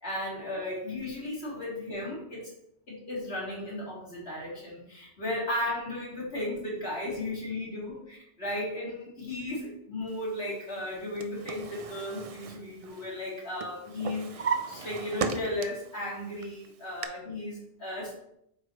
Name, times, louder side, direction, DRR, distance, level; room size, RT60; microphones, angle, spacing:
voice 1, 0.0-2.5 2.9-18.1, left 1 dB, 90° left, -5 dB, 2.8 m, -35 dB
Drawer open or close, 10.9-13.3 13.6-15.9 16.4-17.1, right 5 dB, 45° right, 0.5 m, -35 dB
8.6 x 3.1 x 4.8 m, 0.76 s
omnidirectional pair, 1.1 m